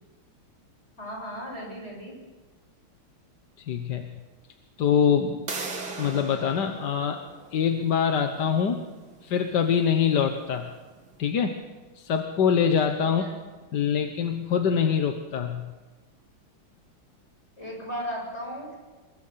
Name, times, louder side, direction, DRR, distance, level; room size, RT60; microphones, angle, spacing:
voice 1, 1.0-2.2 13.0-13.4 17.6-18.8, equal, 30° left, -1 dB, 7.5 m, -36 dB
voice 2, 3.6-4.2 4.8-5.4 6.0-7.2 7.5-8.9 9.2-10.7 11.2-11.6 11.9-13.2 13.7-15.7, left 7 dB, 60° left, 5 dB, 1.6 m, -24 dB
sound 1, 5.5-11.1, right 4 dB, 70° right, 3.3 m, -40 dB
27.0 x 22.5 x 5.7 m, 1.3 s
omnidirectional pair, 2.3 m